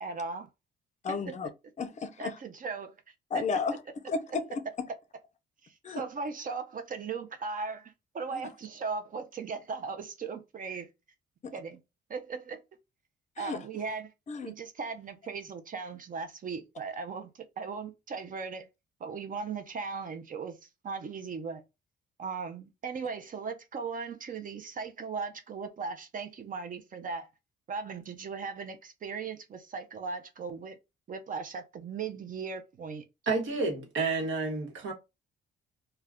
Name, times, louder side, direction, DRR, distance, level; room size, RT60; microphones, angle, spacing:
voice 1, 0.0-0.5 1.1-1.3 2.2-3.0 3.3-3.5 5.6-10.9 11.5-11.8 12.1-12.6 13.4-14.1 14.4-18.7 19.0-21.6 22.2-27.3 27.7-30.8 31.1-33.0, right 5 dB, 45° right, 0.5 m, -38 dB
voice 2, 1.0-1.5 1.8-2.4 3.3-3.8 4.1-4.5 5.8-6.0 8.3-8.4 11.4-11.5 13.4-13.6 14.3-14.5, left 4 dB, 35° left, 0.5 m, -33 dB
voice 3, 33.3-34.9, right 3 dB, 80° right, 1.1 m, -30 dB
2.3 x 2.2 x 3.4 m
cardioid pair, 90°, 20 cm